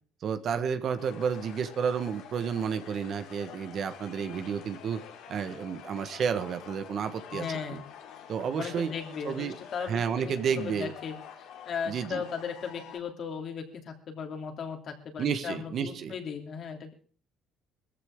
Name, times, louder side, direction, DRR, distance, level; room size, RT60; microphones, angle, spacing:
voice 1, 0.2-5.0 5.3-7.8 8.3-8.9 9.2-9.5 9.9-10.9 11.9-12.2 15.2-16.1, right 7 dB, 45° right, 9 dB, 1.4 m, -31 dB
sound 1, 1.0-13.0, left 8 dB, 80° left, 3.0 m, -48 dB
voice 2, 7.3-7.8 8.6-11.2 11.6-16.9, left 6 dB, 45° left, 4 dB, 3.0 m, -37 dB
21.5 x 14.5 x 3.8 m, 0.41 s
cardioid pair, 140°, 0 cm